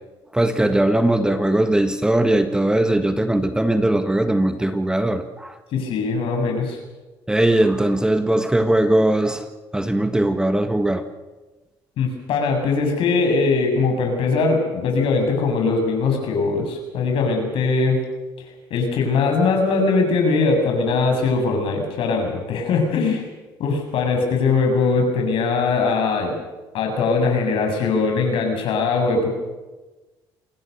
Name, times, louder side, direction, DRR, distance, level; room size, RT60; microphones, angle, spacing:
voice 1, 0.3-5.5 7.3-9.4 9.7-11.1, right 1 dB, 10° right, 8 dB, 1.5 m, -19 dB
voice 2, 5.7-6.8 12.0-18.0 18.7-23.2 23.6-26.3 26.7-29.3, left 4 dB, 65° left, 3 dB, 7.4 m, -21 dB
27.5 x 20.0 x 6.8 m, 1.2 s
cardioid pair, 100°, 10 cm